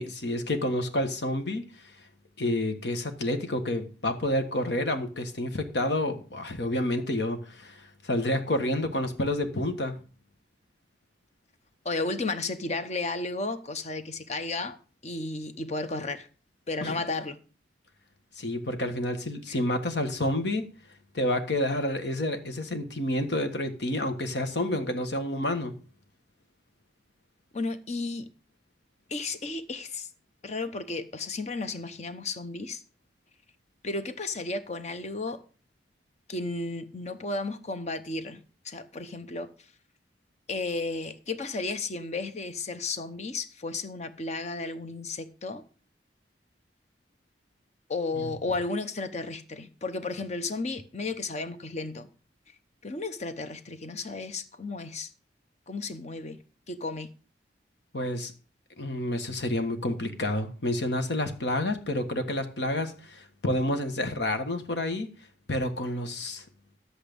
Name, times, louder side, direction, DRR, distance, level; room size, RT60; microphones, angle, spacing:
voice 1, 0.0-1.6 2.4-10.0 16.8-16.9 18.4-20.7 21.1-25.7 48.2-48.3 57.9-58.3 58.8-65.1 65.5-66.4, left 1 dB, 75° left, 1.5 m, -29 dB
voice 2, 11.8-14.8 15.0-16.3 16.7-17.4 19.5-19.6 27.5-28.3 29.1-30.1 30.4-32.8 33.8-35.4 36.3-39.5 40.5-45.6 47.9-52.1 52.8-55.1 55.7-56.4 56.7-57.1, left 3 dB, 40° left, 0.9 m, -33 dB
10.0 x 8.3 x 5.2 m
head